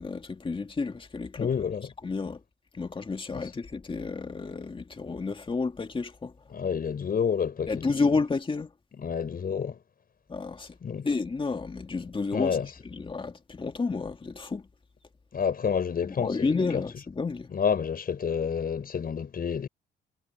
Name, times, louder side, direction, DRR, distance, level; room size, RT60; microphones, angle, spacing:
voice 1, 0.0-1.5 2.0-2.4 2.7-6.3 7.7-8.7 10.3-10.8 11.0-12.6 12.8-14.7 16.0-17.5, left 4 dB, 25° left, 2.3 m, -31 dB
voice 2, 1.4-1.9 6.5-7.9 9.0-9.8 10.8-11.1 12.3-12.7 15.3-16.8 17.5-19.7, left 7 dB, 50° left, 5.8 m, -29 dB
cardioid pair, 90°, 20 cm